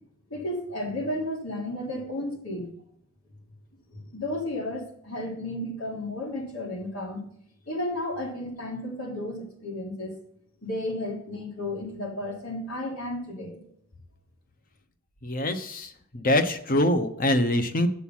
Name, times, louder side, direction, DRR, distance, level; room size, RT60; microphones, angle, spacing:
voice 1, 0.3-2.7 3.9-7.2 7.7-10.1 10.6-13.6, left 1 dB, 85° left, -1 dB, 3.5 m, -33 dB
voice 2, 15.2-17.9, left 1 dB, 40° left, 9 dB, 1.0 m, -24 dB
8.3 x 6.7 x 5.7 m, 0.67 s
head